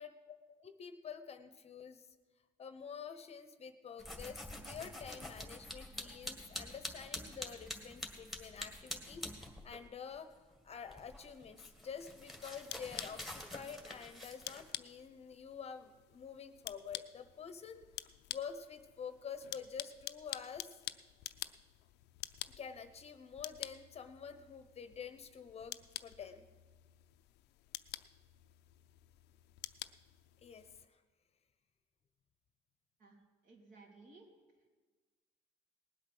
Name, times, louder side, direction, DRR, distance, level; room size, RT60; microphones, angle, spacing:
voice 1, 0.0-2.1 2.6-10.3 10.6-20.7 22.6-26.5 30.4-31.0, left 6 dB, 40° left, 11 dB, 0.9 m, -48 dB
sound 1, 4.0-9.9 10.2-14.7, left 1 dB, ahead, 1.8 m, -47 dB
sound 2, 12.1-30.9, left 16 dB, 80° left, 0.5 m, -49 dB
voice 2, 33.4-34.3, right 3 dB, 55° right, 1 dB, 3.3 m, -58 dB
19.0 x 8.2 x 6.1 m, 1.4 s
cardioid pair, 110°, 17 cm